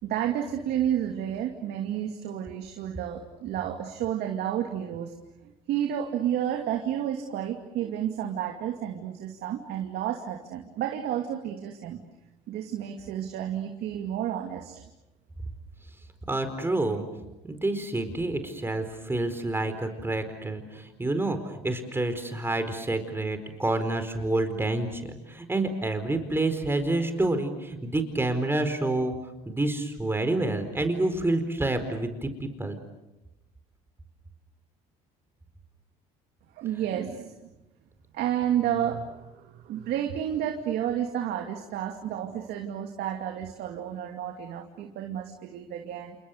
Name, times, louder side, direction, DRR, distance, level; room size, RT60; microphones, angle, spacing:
voice 1, 0.0-5.1 5.4-12.0 12.5-14.8 36.5-37.4 38.1-46.2, right 10 dB, 70° right, 3 dB, 2.5 m, -31 dB
voice 2, 16.3-17.0 17.4-29.1 29.5-32.8, right 2 dB, 15° right, 8 dB, 4.5 m, -28 dB
29.5 x 28.5 x 6.7 m, 0.97 s
supercardioid pair, 90°, 18 cm